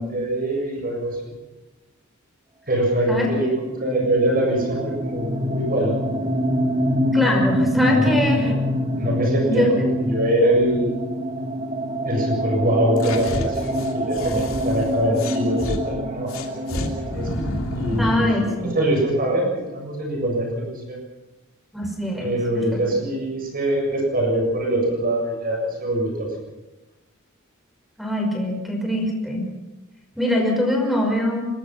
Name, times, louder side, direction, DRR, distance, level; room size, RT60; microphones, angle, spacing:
voice 1, 0.1-1.3 2.7-6.1 7.8-8.6 9.0-11.0 12.0-17.5 17.7-19.5 19.7-21.0 22.2-26.3, right 1 dB, 45° right, 0 dB, 7.3 m, -23 dB
sound 1, 3.5-19.1, equal, 25° right, 1.4 m, -25 dB
voice 2, 7.1-8.5 9.4-9.7 18.0-18.8 21.7-22.8 28.0-29.5 30.2-31.5, left 1 dB, ahead, 1 dB, 5.7 m, -23 dB
sound 2, 13.0-15.8 16.3-18.4, left 1 dB, 75° left, 3.2 m, -30 dB
25.5 x 21.0 x 5.9 m, 1.1 s
head